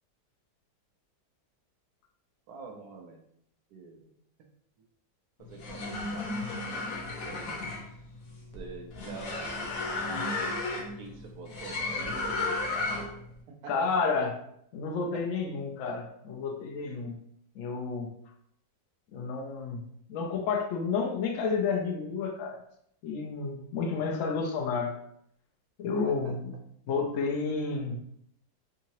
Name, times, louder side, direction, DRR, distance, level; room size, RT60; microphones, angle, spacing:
voice 1, 2.5-3.2 3.7-4.1 4.4-4.5 5.4-6.4 6.7-6.9 7.2-7.5 8.5-9.7 11.0-13.0 13.5-14.1 15.1-15.3 26.0-26.4, right 4 dB, 70° right, 3 dB, 1.0 m, -45 dB
sound 1, 5.4-13.3, left 3 dB, 65° left, 0.9 m, -34 dB
voice 2, 13.7-14.3 14.7-17.2 17.6-18.1 19.1-19.8 20.1-22.6 23.0-24.9 25.8-26.5 26.9-28.0, left 4 dB, 85° left, 2 dB, 0.7 m, -30 dB
3.6 x 2.8 x 2.9 m, 0.71 s
omnidirectional pair, 2.0 m